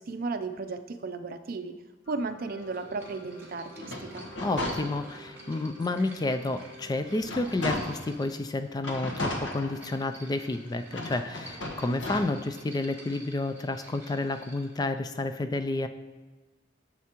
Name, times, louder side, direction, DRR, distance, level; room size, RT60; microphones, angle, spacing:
voice 1, 0.0-1.8 2.1-4.3, right 3 dB, 50° right, 9 dB, 0.5 m, -35 dB
sound 1, 2.0-7.2, right 2 dB, 40° left, 1.8 m, -51 dB
sound 2, 2.6-14.8, right 2 dB, 10° right, 1.9 m, -52 dB
sound 3, 3.7-5.4 5.9-6.0 6.4-8.2 8.8-10.3 10.8-12.2, left 1 dB, 75° left, 1.3 m, -35 dB
voice 2, 4.4-15.9, left 2 dB, 20° left, 9 dB, 0.3 m, -30 dB
11.0 x 7.4 x 2.9 m, 1.3 s
head